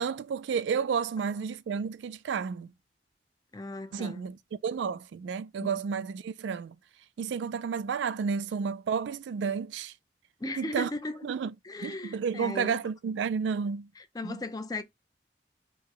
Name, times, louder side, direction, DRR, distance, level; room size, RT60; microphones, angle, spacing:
voice 1, 0.0-2.7 3.9-6.8 7.2-9.9 10.6-10.9 11.2-11.5 11.8-13.9 14.2-14.4, right 6 dB, 90° right, 0.3 m, -31 dB
voice 2, 3.5-4.3 5.6-5.7 10.4-11.2 11.6-12.7 14.0-14.8, left 2 dB, 20° left, 0.5 m, -37 dB
4.7 x 2.1 x 4.7 m
head